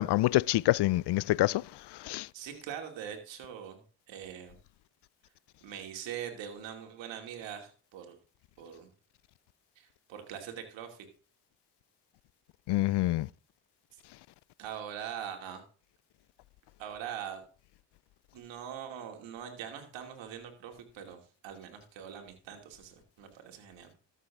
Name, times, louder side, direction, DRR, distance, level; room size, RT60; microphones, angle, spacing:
voice 1, 0.0-1.6 2.0-2.3 12.7-13.3, left 17 dB, 65° left, 0.5 m, -26 dB
voice 2, 2.3-3.8 4.1-4.6 5.6-8.2 8.6-8.9 9.8-11.1 13.9-14.0 14.6-15.6 16.8-17.4 18.3-23.9, right 9 dB, 85° right, 2.6 m, -42 dB
13.5 x 7.5 x 3.6 m
supercardioid pair, 65°, 44 cm